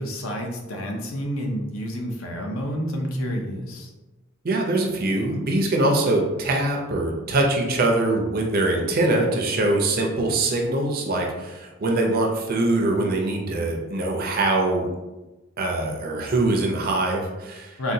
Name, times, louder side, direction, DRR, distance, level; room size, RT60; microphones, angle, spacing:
voice 1, 0.0-3.9 10.2-10.3 17.8-17.9, equal, 65° left, 1 dB, 0.6 m, -29 dB
voice 2, 4.4-14.9 15.6-17.8, right 2 dB, 45° right, 1 dB, 0.5 m, -23 dB
3.8 x 2.2 x 2.6 m, 1.1 s
head